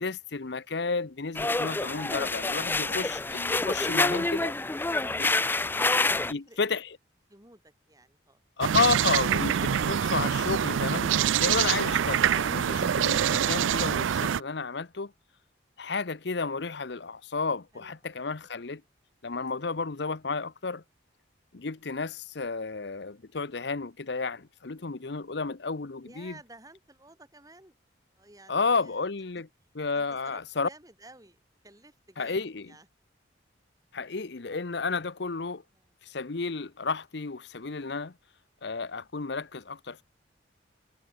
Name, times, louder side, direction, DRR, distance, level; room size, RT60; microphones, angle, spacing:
voice 1, 0.0-4.5 5.2-5.3 6.3-6.9 8.6-11.1 11.4-15.1 15.8-18.8 19.2-20.8 21.5-26.3 28.5-29.5 29.7-30.7 32.2-32.7 33.9-35.6 36.0-38.1 38.6-40.0, left 4 dB, 60° left, 0.8 m, -32 dB
sound 1, 1.3-6.3, left 2 dB, 10° left, 0.4 m, -27 dB
voice 2, 5.2-6.6 7.3-8.4 17.7-17.9 26.0-27.7 28.1-29.0 29.9-32.9 35.7-36.0, right 2 dB, 20° right, 3.9 m, -54 dB
sound 2, 8.6-14.4, right 8 dB, 85° right, 0.4 m, -25 dB
head